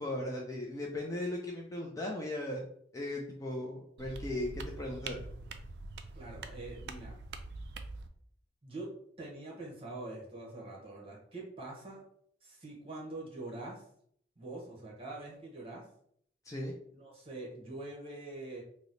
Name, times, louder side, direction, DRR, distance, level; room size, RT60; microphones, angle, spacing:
voice 1, 0.0-2.6 2.9-5.2 16.5-16.7, left 1 dB, 15° left, -1 dB, 0.3 m, -37 dB
sound 1, 4.0-8.1, right 3 dB, 65° right, 0.3 m, -44 dB
voice 2, 6.1-7.2 8.6-12.0 12.4-13.8 14.4-15.9 16.9-18.6, right 2 dB, 30° right, -2 dB, 1.0 m, -44 dB
3.0 x 2.0 x 3.9 m, 0.67 s
head